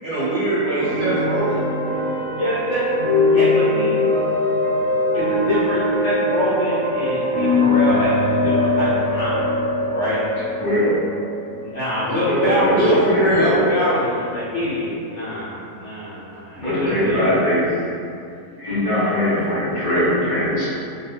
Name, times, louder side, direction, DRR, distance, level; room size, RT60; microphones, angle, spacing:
voice 1, 0.0-1.6 12.4-13.9, right 1 dB, 80° right, -11 dB, 0.4 m, -21 dB
sound 1, 0.7-12.4, left 2 dB, 40° right, 0.9 m, -21 dB
voice 2, 2.4-2.8 3.3-3.9 5.1-9.4 9.9-10.3 11.6-12.9 13.3-17.3, left 1 dB, 70° left, -11 dB, 0.7 m, -24 dB
voice 3, 10.6-10.9 12.2-13.6 16.6-17.6 18.6-20.6, left 1 dB, 40° left, -11 dB, 0.8 m, -21 dB
2.4 x 2.4 x 2.7 m, 2.4 s
omnidirectional pair, 1.7 m